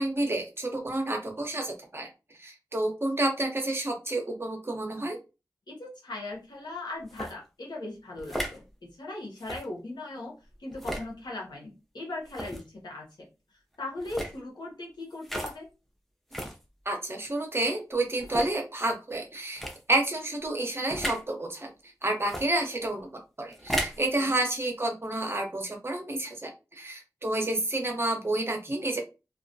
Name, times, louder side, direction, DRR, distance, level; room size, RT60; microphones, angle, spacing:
voice 1, 0.0-2.1 2.4-5.2 16.9-21.7 22.0-23.1 23.4-29.0, right 2 dB, 35° right, 3 dB, 0.7 m, -30 dB
voice 2, 5.7-10.3 10.6-13.3 13.8-15.7 24.2-24.4, left 2 dB, 85° left, -2 dB, 0.8 m, -39 dB
sound 1, 7.1-7.3 8.2-8.6 9.4-9.6 10.7-11.1 12.3-12.6 14.0-14.3 15.2-15.6 16.3-16.6 17.3-17.4 18.2-18.6 19.5-19.8 20.9-21.2 22.2-22.5 23.5-24.0, right 1 dB, 5° left, 0.5 m, -34 dB
2.3 x 2.1 x 2.5 m, 0.29 s
cardioid pair, 45°, 7 cm